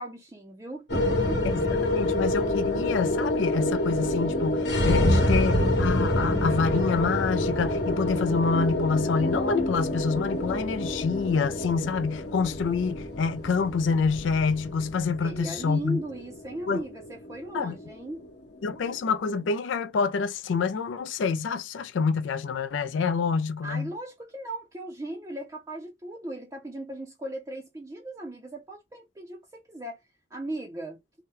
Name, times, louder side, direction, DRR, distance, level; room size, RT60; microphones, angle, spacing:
voice 1, 0.0-1.4 15.2-18.2 23.6-30.0 30.3-31.0, right 1 dB, 15° right, 0.5 m, -37 dB
sound 1, 0.9-19.3, left 1 dB, 60° left, 0.9 m, -27 dB
voice 2, 1.4-16.0 16.7-16.8 17.5-17.8 18.6-23.9, left 5 dB, 85° left, 0.4 m, -27 dB
2.8 x 2.1 x 3.7 m
head